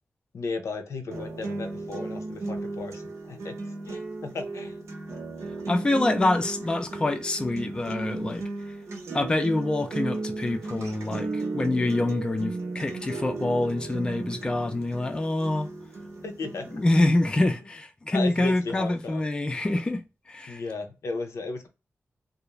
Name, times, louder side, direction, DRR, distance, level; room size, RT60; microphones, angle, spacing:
voice 1, 0.3-3.6 3.8-4.7 16.2-16.7 18.1-19.2 20.5-21.7, left 3 dB, 90° left, 0.6 m, -35 dB
sound 1, 1.1-17.1, right 3 dB, 85° right, 0.7 m, -35 dB
voice 2, 5.7-8.4 9.1-15.7 16.7-20.0 20.3-20.6, left 2 dB, 20° left, 0.3 m, -26 dB
2.4 x 2.0 x 2.9 m
wide cardioid pair, 150°, 5 cm